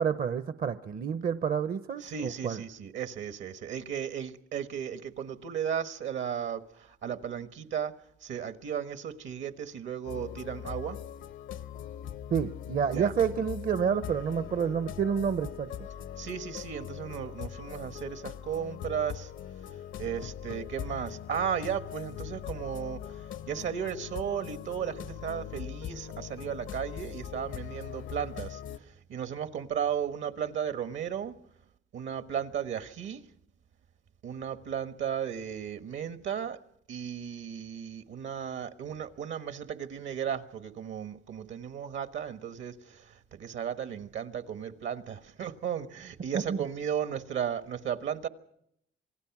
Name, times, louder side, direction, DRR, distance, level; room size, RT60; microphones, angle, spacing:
voice 1, 0.0-2.6 12.3-15.9 46.3-46.7, right 7 dB, 50° right, 0.8 m, -29 dB
voice 2, 2.0-6.6 7.0-11.0 12.9-13.1 16.2-19.3 20.0-23.0 23.5-28.6 29.1-31.3 31.9-33.2 34.2-36.6 36.9-43.0 43.3-48.3, right 8 dB, 70° right, 1.4 m, -35 dB
sound 1, 10.0-28.8, left 10 dB, 75° left, 1.0 m, -41 dB
27.0 x 18.5 x 6.0 m
cardioid pair, 90°, 20 cm